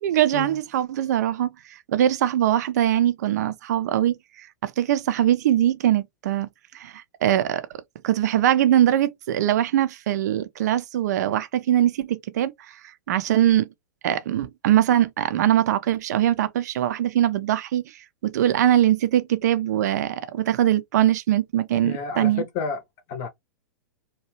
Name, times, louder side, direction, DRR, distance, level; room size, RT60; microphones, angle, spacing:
voice 1, 0.0-6.5 6.7-7.7 8.0-13.7 14.0-22.4, right 12 dB, 65° right, 0.5 m, -22 dB
voice 2, 21.8-22.8 23.1-23.3, left 5 dB, 45° left, 0.7 m, -30 dB
2.8 x 2.3 x 2.9 m
hypercardioid pair, 100°, 10 cm